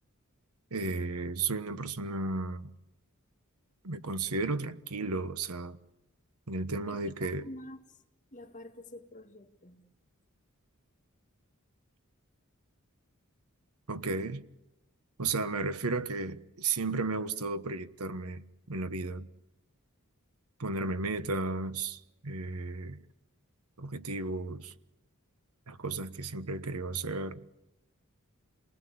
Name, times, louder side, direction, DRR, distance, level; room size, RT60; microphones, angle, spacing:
voice 1, 0.7-2.7 3.8-5.8 6.5-7.4 13.9-14.5 15.2-18.4 18.7-19.3 20.6-23.0 23.8-24.7 25.7-27.4, right 3 dB, 90° right, 1.3 m, -34 dB
voice 2, 6.9-8.0 8.3-9.9, left 1 dB, 35° left, 2.0 m, -48 dB
29.0 x 20.0 x 8.7 m
head